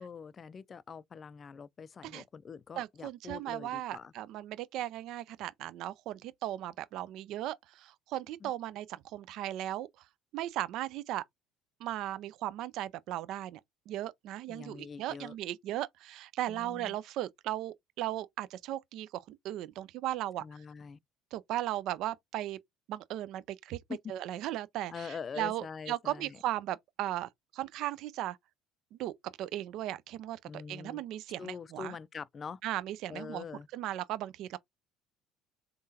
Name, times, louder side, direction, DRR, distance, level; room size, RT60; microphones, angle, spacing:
voice 1, 0.0-4.1 8.4-8.5 14.5-15.4 16.5-17.0 20.4-21.0 23.9-24.1 24.9-26.4 30.4-31.0 31.4-32.6 33.1-33.7, left 6 dB, 35° left, 0.3 m, -44 dB
voice 2, 2.8-9.9 10.3-11.2 11.8-13.6 13.9-20.4 21.3-22.6 22.9-23.8 24.1-28.4 29.0-32.0 32.6-33.4 33.7-34.6, right 13 dB, 60° right, 0.3 m, -37 dB
3.6 x 3.5 x 2.7 m
hypercardioid pair, 65°, 0 cm